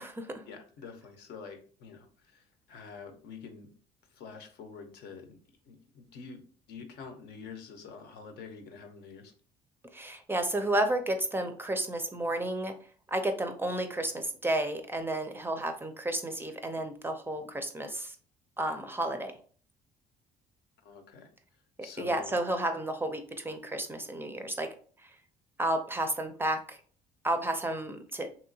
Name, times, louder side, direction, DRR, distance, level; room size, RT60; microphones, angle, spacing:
voice 1, 0.5-3.7 4.1-5.4 5.7-6.4 6.7-9.3 20.8-21.3 21.8-22.3, left 5 dB, 75° left, 6 dB, 0.7 m, -47 dB
voice 2, 9.9-12.7 13.1-18.2 18.6-19.3 22.0-24.7 25.0-25.1 25.6-26.8 27.2-28.3, right 1 dB, 15° right, 6 dB, 0.4 m, -32 dB
3.0 x 2.8 x 2.6 m, 0.43 s
cardioid pair, 110°, 17 cm